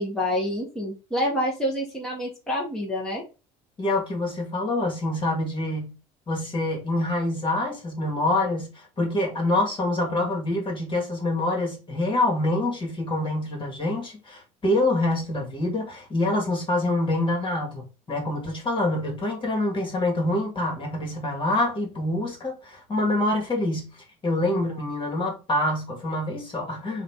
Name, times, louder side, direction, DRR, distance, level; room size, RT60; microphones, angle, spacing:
voice 1, 0.0-3.2, left 1 dB, 5° left, 1.4 m, -27 dB
voice 2, 3.8-5.9 6.3-23.9 24.2-27.0, left 2 dB, 30° left, 2.0 m, -26 dB
3.8 x 2.7 x 3.6 m
supercardioid pair, 80°, 16 cm